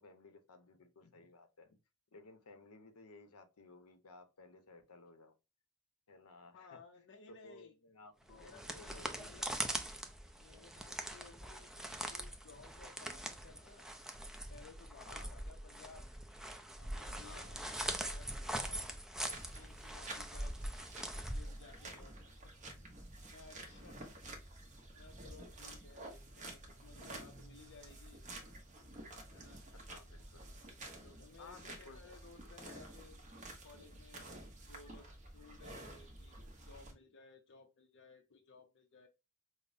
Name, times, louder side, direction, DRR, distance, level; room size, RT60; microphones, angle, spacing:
voice 1, 0.0-1.8 2.1-5.3 6.1-6.8 7.4-9.4 11.1-11.5 15.0-15.3 17.2-17.5 23.9-24.0 29.9-30.6 31.4-32.0 32.6-33.2, left 3 dB, 85° left, 0.8 m, -58 dB
voice 2, 6.3-7.7 8.3-9.8 10.4-13.9 14.5-16.0 16.8-18.8 19.5-20.6 21.3-22.4 23.2-24.0 24.9-28.2 29.3-29.6 31.0-33.2 33.6-34.3 34.7-36.4 36.6-39.1, left 4 dB, 55° left, 0.5 m, -59 dB
sound 1, 8.3-22.0, right 1 dB, ahead, 0.4 m, -42 dB
sound 2, 19.3-36.9, right 2 dB, 35° right, 0.9 m, -51 dB
5.2 x 2.0 x 2.5 m
head